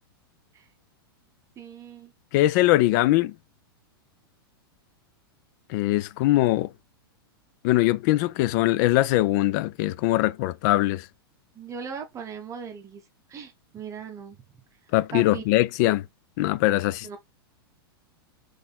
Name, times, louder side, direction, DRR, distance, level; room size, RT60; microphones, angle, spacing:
voice 1, 1.6-2.1 11.5-13.0 13.3-14.4 15.1-15.4 17.0-17.2, right 7 dB, 25° right, 0.8 m, -38 dB
voice 2, 2.3-3.3 5.7-6.7 7.6-11.0 14.9-16.0 16.4-17.2, left 17 dB, 50° left, 0.4 m, -22 dB
3.6 x 3.2 x 4.0 m
hypercardioid pair, 120°, 13 cm